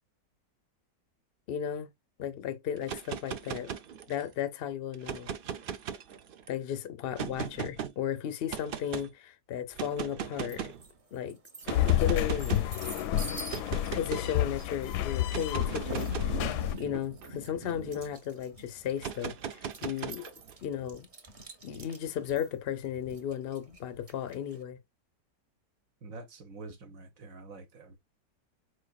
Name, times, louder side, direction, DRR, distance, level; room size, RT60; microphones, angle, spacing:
voice 1, 1.5-1.9 2.2-3.7 4.1-5.3 6.5-10.7 11.1-11.4 11.7-12.6 13.9-16.3 16.8-20.2 20.6-21.1 21.6-24.8, left 9 dB, 60° left, 0.6 m, -35 dB
sound 1, 2.8-4.3 4.9-6.5 7.1-7.9 8.5-9.1 9.7-10.8 11.6-12.7 13.5-14.3 15.2-18.0 19.0-20.5, right 8 dB, 90° right, 0.4 m, -38 dB
sound 2, 10.5-10.9 11.3-24.6, right 2 dB, 35° right, 0.6 m, -44 dB
sound 3, 11.7-16.7, left 12 dB, 85° left, 1.1 m, -30 dB
voice 2, 13.2-13.5 26.0-28.0, right 3 dB, 60° right, 1.2 m, -46 dB
4.7 x 4.3 x 2.3 m
omnidirectional pair, 1.7 m